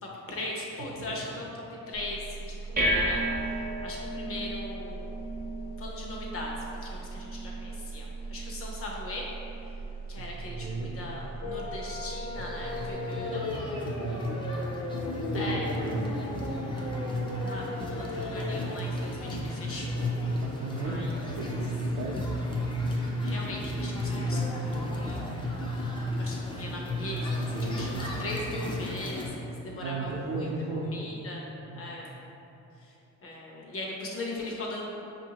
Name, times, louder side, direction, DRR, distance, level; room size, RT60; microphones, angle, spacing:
voice 1, 0.0-5.2 5.8-6.6 6.8-9.3 9.6-9.8 10.1-13.5 15.3-15.7 17.4-20.1 20.8-21.2 22.9-25.3 26.2-30.5 30.9-31.4 31.8-32.1 32.8-32.9 33.2-34.8, left 2 dB, 45° left, -3 dB, 0.8 m, -39 dB
sound 1, 1.9-12.9, right 1 dB, 30° right, 0.6 m, -35 dB
voice 2, 9.9-11.0 13.0-14.4 15.1-16.2 20.2-22.6 27.3-28.3 29.7-31.0 31.6-32.0, right 3 dB, 75° right, -6 dB, 0.6 m, -36 dB
sound 2, 11.4-18.6, left 2 dB, 80° left, 0.8 m, -36 dB
sound 3, 12.3-29.3, left 1 dB, 15° left, 0.4 m, -33 dB
5.4 x 2.6 x 2.9 m, 2.9 s
cardioid pair, 120°, 31 cm